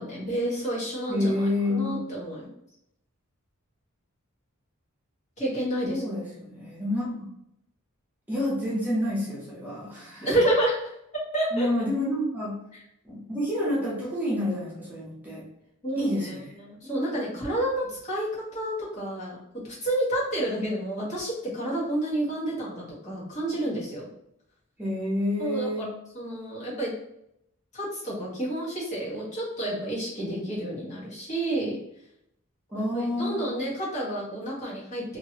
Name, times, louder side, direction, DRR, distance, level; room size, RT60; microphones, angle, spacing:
voice 1, 0.0-2.5 5.4-6.0 10.2-10.8 11.3-11.9 15.8-19.4 19.8-24.1 25.4-25.7 26.1-26.9 27.7-31.8 32.7-35.0, right 1 dB, 35° left, -7 dB, 1.4 m, -29 dB
voice 2, 1.1-2.0 5.8-7.2 8.3-10.3 11.5-12.6 13.0-15.4 16.0-16.5 24.8-25.9 32.7-33.5, left 1 dB, 10° right, -7 dB, 0.8 m, -29 dB
2.9 x 2.7 x 2.9 m, 0.77 s
head